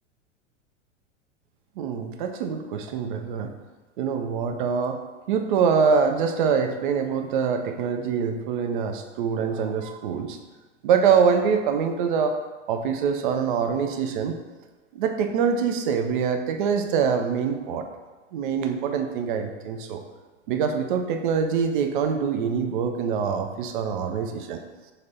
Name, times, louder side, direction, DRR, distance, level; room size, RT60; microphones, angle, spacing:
voice 1, 1.8-3.5 4.0-5.0 5.3-10.4 10.8-12.3 12.7-14.4 14.9-17.8 18.3-20.0 20.5-24.6, right 6 dB, 45° right, 6 dB, 0.5 m, -24 dB
5.2 x 2.9 x 2.7 m, 1.3 s
figure-of-eight pair, 95°, 38 cm